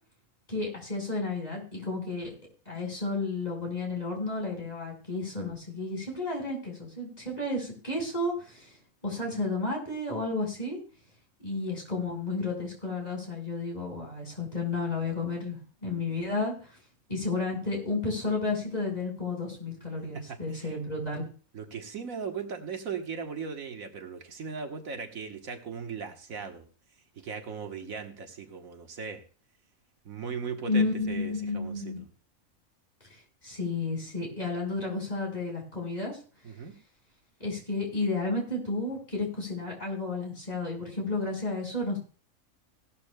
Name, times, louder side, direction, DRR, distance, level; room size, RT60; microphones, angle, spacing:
voice 1, 0.5-2.3 2.6-8.7 9.0-10.8 11.4-16.7 17.1-21.2 30.7-32.0 33.4-36.2 37.4-42.0, left 3 dB, 30° left, 0 dB, 4.8 m, -32 dB
voice 2, 20.1-20.8 21.5-26.7 27.2-29.2 30.0-32.1 36.4-36.7, right 6 dB, 75° right, 5 dB, 1.6 m, -38 dB
17.0 x 12.0 x 2.2 m, 0.36 s
omnidirectional pair, 1.4 m